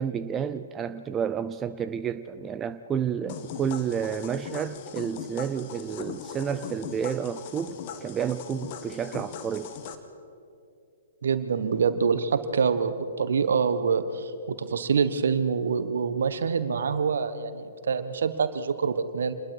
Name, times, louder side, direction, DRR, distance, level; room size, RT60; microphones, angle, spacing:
voice 1, 0.0-9.7, right 8 dB, 20° right, 11 dB, 0.5 m, -30 dB
sound 1, 3.3-9.9, left 7 dB, 40° left, 1.6 m, -39 dB
voice 2, 11.2-19.3, right 6 dB, 65° right, 11 dB, 1.3 m, -26 dB
27.0 x 21.0 x 4.8 m, 2.6 s
figure-of-eight pair, 120°, 0 cm